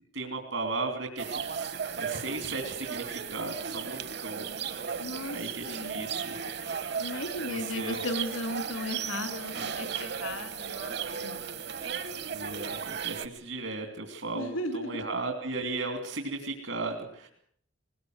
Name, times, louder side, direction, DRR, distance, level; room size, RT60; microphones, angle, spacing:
voice 1, 0.1-4.5 5.3-6.4 6.8-7.1 7.5-8.0 12.3-17.3, right 3 dB, 75° right, 4 dB, 3.1 m, -36 dB
sound 1, 1.2-13.3, right 7 dB, 55° right, 1.2 m, -35 dB
voice 2, 5.0-6.1 7.0-10.9 11.2-11.6 14.3-15.1, left 1 dB, 90° left, 7 dB, 2.7 m, -36 dB
21.0 x 19.5 x 7.9 m, 0.63 s
head